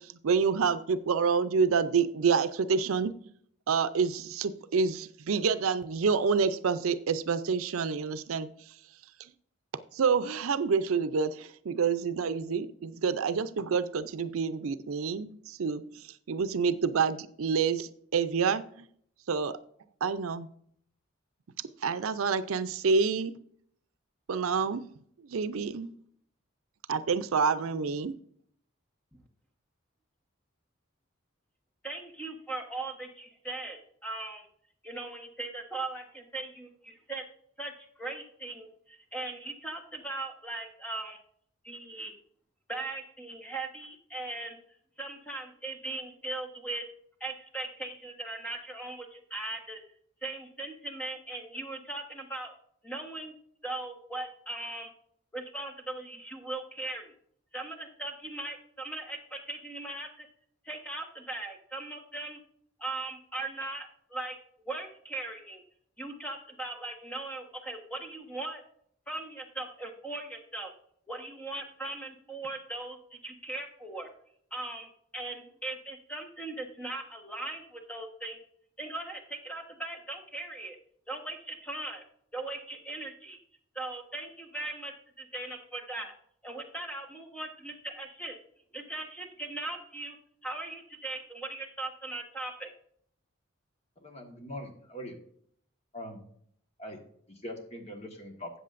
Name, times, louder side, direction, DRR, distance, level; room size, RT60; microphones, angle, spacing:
voice 1, 0.0-3.1 3.7-8.5 9.9-18.9 19.3-19.6 20.0-20.5 21.8-23.3 24.3-24.8 25.2-25.9 26.9-28.2, right 5 dB, 85° right, 12 dB, 0.5 m, -28 dB
voice 2, 31.8-34.5 34.8-37.2 37.6-41.2 41.6-42.1 42.7-44.6 45.0-46.8 47.2-49.8 50.2-52.5 52.8-53.3 53.6-54.9 55.3-57.1 57.5-60.3 60.6-62.4 62.8-64.4 64.7-65.6 66.0-68.6 69.1-70.7 71.1-74.1 74.5-78.4 78.8-80.8 81.1-82.0 82.3-83.4 83.7-86.1 86.4-88.4 88.7-90.2 90.4-92.7, right 2 dB, 5° left, 2 dB, 1.2 m, -39 dB
voice 3, 94.0-95.2 95.9-96.2 96.8-97.0 97.3-98.5, equal, 30° left, 3 dB, 1.4 m, -42 dB
13.0 x 8.2 x 2.5 m, 0.64 s
head